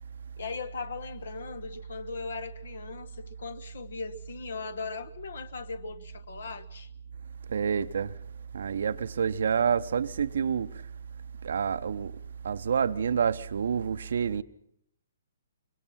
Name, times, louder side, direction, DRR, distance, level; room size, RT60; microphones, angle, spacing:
voice 1, 0.4-6.9, left 4 dB, 60° left, 1.3 m, -38 dB
voice 2, 7.5-8.1 8.5-10.7 11.4-12.1 12.4-14.4, right 7 dB, 55° right, 0.8 m, -28 dB
24.5 x 22.5 x 5.8 m
figure-of-eight pair, 125°, 0 cm